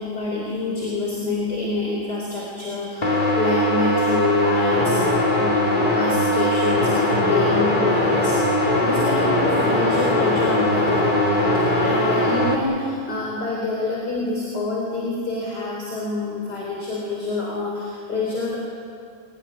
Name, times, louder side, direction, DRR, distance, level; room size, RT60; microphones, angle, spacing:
voice 1, 0.0-5.0 5.4-18.6, left 3 dB, 45° left, -3 dB, 4.5 m, -27 dB
sound 1, 3.0-12.6, left 1 dB, 20° left, 2.8 m, -20 dB
24.0 x 17.5 x 10.0 m, 2.3 s
omnidirectional pair, 2.4 m